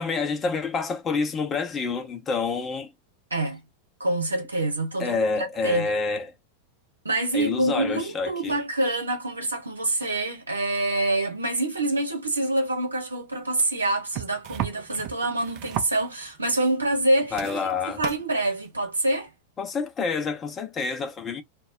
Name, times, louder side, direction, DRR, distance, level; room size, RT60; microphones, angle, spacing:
voice 1, 0.0-2.9 5.0-6.3 7.3-8.6 17.3-18.0 19.6-21.4, left 4 dB, 25° left, 0.6 m, -28 dB
voice 2, 4.0-5.9 7.0-19.3, right 2 dB, 80° right, 0.8 m, -26 dB
sound 1, 14.1-16.4 16.9-17.0 17.3-18.2 19.3-19.4, right 13 dB, 40° right, 0.4 m, -34 dB
2.2 x 2.0 x 3.4 m
figure-of-eight pair, 90°, 0 cm